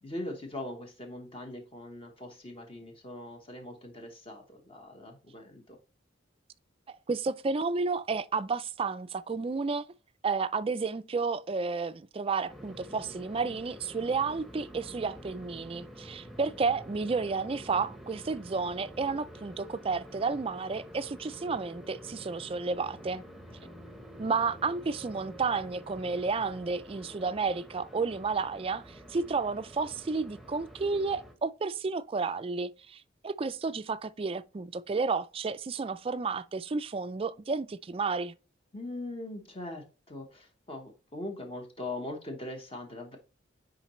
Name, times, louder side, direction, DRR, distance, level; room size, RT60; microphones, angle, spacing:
voice 1, 0.0-5.8 23.6-23.7 38.7-43.2, left 1 dB, 30° left, 1.0 m, -41 dB
voice 2, 7.1-9.9 10.2-23.2 24.2-38.3, right 4 dB, 30° right, 0.3 m, -31 dB
sound 1, 12.5-31.3, equal, ahead, 0.9 m, -48 dB
9.9 x 3.9 x 3.0 m
head